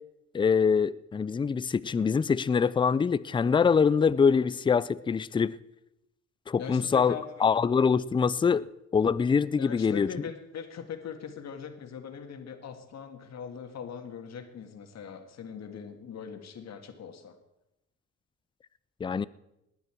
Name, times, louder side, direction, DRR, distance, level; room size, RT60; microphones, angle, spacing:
voice 1, 0.3-5.6 6.5-8.7 8.9-10.1 19.0-19.3, left 6 dB, 15° left, 0.4 m, -24 dB
voice 2, 6.6-7.5 9.6-17.4, left 7 dB, 60° left, 1.8 m, -41 dB
18.5 x 9.6 x 4.5 m
cardioid pair, 90°, 30 cm